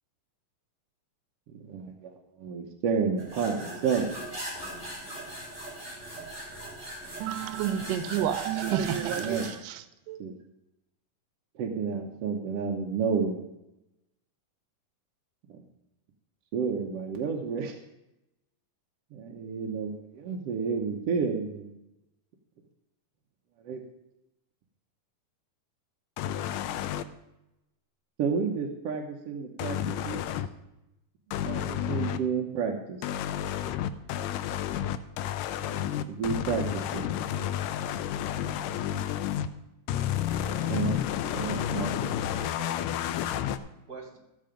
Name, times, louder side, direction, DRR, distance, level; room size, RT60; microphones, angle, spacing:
voice 1, 1.5-4.2 9.2-9.6 10.2-10.3 11.5-13.4 15.5-15.6 16.5-17.8 19.1-21.7 23.6-23.8 28.2-29.8 30.0-30.2 31.5-33.1 36.1-37.1 40.7-41.0 41.3-41.9, right 6 dB, 65° right, 1.6 m, -30 dB
sound 1, 3.2-9.5, right 1 dB, 5° left, 4.9 m, -39 dB
voice 2, 7.2-9.8 10.1-10.2, right 10 dB, 90° right, 2.2 m, -30 dB
sound 2, 26.2-27.0 29.6-30.5 31.3-32.2 33.0-39.5 39.9-43.6, left 10 dB, 90° left, 1.5 m, -31 dB
voice 3, 40.4-40.7 41.3-42.8 43.9-44.2, right 4 dB, 30° right, 2.7 m, -44 dB
14.0 x 7.6 x 5.1 m
omnidirectional pair, 3.7 m